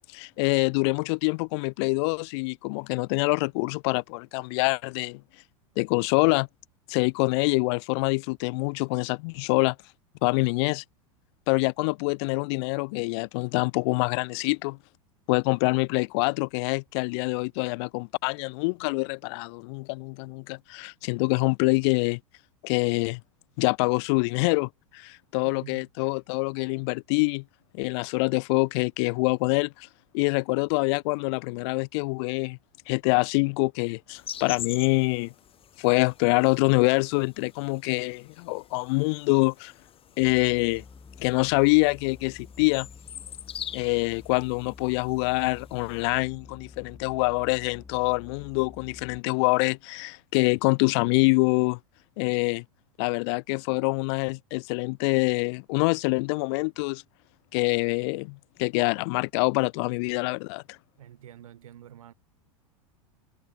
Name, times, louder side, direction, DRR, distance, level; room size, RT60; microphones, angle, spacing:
voice 1, 0.1-5.2 5.8-6.5 6.9-9.8 10.2-10.8 11.5-14.8 15.3-22.2 22.6-23.2 23.6-27.4 27.7-29.9 30.1-32.6 32.9-35.3 35.8-39.7 40.2-40.8 41.2-42.9 43.7-51.8 52.2-52.6 53.0-57.0 57.5-60.8, left 30 dB, 50° left, 0.4 m, -25 dB
voice 2, 25.4-25.8 61.0-62.1, right 11 dB, 75° right, 7.9 m, -47 dB
sound 1, 34.1-46.0, left 9 dB, 30° left, 6.0 m, -44 dB
sound 2, 40.2-49.3, left 4 dB, 15° left, 2.1 m, -49 dB
hypercardioid pair, 90°, 18 cm